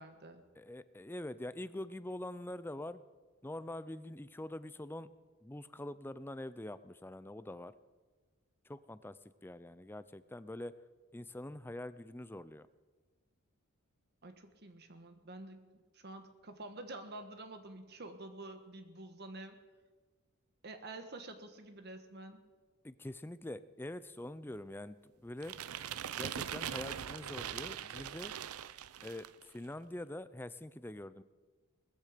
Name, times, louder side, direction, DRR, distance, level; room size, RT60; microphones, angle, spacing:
voice 1, 0.0-0.4 14.2-19.6 20.6-22.4, right 2 dB, 50° right, 7 dB, 1.3 m, -48 dB
voice 2, 0.6-3.0 3.4-5.1 5.4-7.7 8.6-10.7 11.1-12.7 22.8-25.5 26.1-28.3 29.0-31.2, left 1 dB, 10° left, 14 dB, 0.5 m, -44 dB
sound 1, 25.4-29.4, right 9 dB, 80° right, 0.5 m, -41 dB
20.0 x 14.0 x 5.1 m, 1.3 s
head